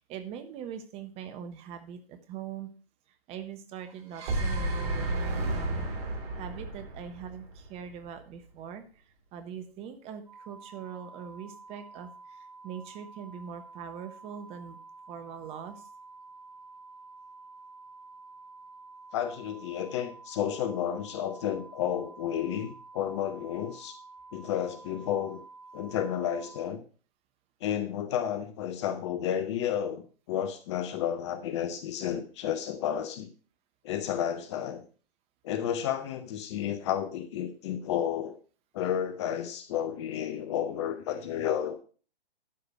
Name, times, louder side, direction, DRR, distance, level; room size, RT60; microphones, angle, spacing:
voice 1, 0.1-2.7 3.3-5.9 6.3-14.8 15.1-15.9, right 8 dB, 20° right, 8 dB, 1.1 m, -42 dB
sound 1, 3.9-8.1, right 2 dB, 40° right, 2.8 m, -32 dB
sound 2, 10.3-26.6, right 3 dB, ahead, 2.4 m, -50 dB
voice 2, 19.1-24.0 24.3-25.4 25.7-26.8 27.6-30.0 30.3-33.3 33.8-34.8 35.4-38.4 38.7-41.8, left 9 dB, 30° left, 11 dB, 0.8 m, -31 dB
12.5 x 5.0 x 5.9 m, 0.38 s
figure-of-eight pair, 125°, 30 cm